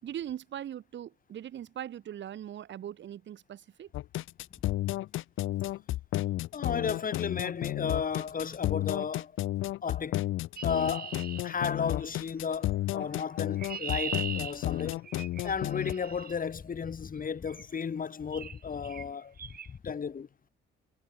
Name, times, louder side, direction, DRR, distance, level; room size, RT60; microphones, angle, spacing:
voice 1, 0.0-3.9, right 10 dB, 65° right, 3.1 m, -40 dB
sound 1, 3.9-15.9, left 15 dB, 85° left, 2.1 m, -32 dB
voice 2, 6.5-9.3 9.8-10.2 10.6-11.2 11.4-15.0 15.4-19.3 19.7-20.3, left 6 dB, 45° left, 5.4 m, -34 dB
Chirp tweet, 10.6-12.2 13.2-16.4 17.5-17.7 18.3-18.6 18.8-19.1 19.4-19.7, right 7 dB, 50° right, 3.2 m, -40 dB
cardioid pair, 90°, 20 cm